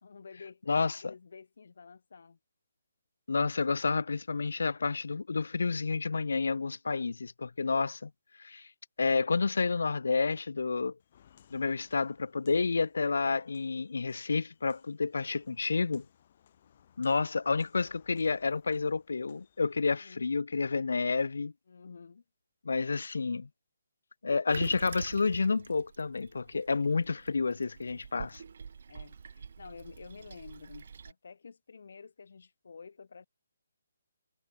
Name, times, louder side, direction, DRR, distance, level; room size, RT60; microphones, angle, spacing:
voice 1, 0.0-0.6 1.0-2.4 16.6-16.7 20.0-20.2 21.7-22.2 28.2-28.4 28.9-33.3, left 5 dB, 65° left, 0.9 m, -50 dB
voice 2, 0.7-1.1 3.3-8.1 8.4-8.7 9.0-10.9 11.5-16.0 17.0-21.5 22.6-23.5 24.2-28.4, left 4 dB, 80° left, 0.3 m, -30 dB
Walk footsteps, 11.0-19.8, left 9 dB, 40° left, 2.0 m, -64 dB
Toilet flush, 24.5-31.1, right 6 dB, 60° right, 0.5 m, -46 dB
hypercardioid pair, 165°, 0 cm